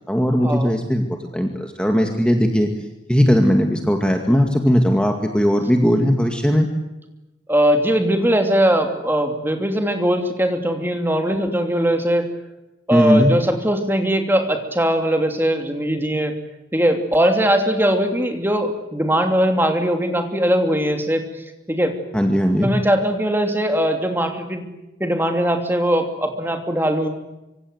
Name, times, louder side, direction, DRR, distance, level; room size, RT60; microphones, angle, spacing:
voice 1, 0.1-2.7 3.1-6.7 12.9-13.3 22.1-22.7, equal, 5° left, 3 dB, 2.1 m, -18 dB
voice 2, 7.5-12.3 12.9-16.4 16.7-21.3 21.7-22.0 22.6-24.7 25.0-27.1, equal, 10° right, 5 dB, 2.9 m, -20 dB
25.5 x 25.0 x 8.1 m, 0.97 s
head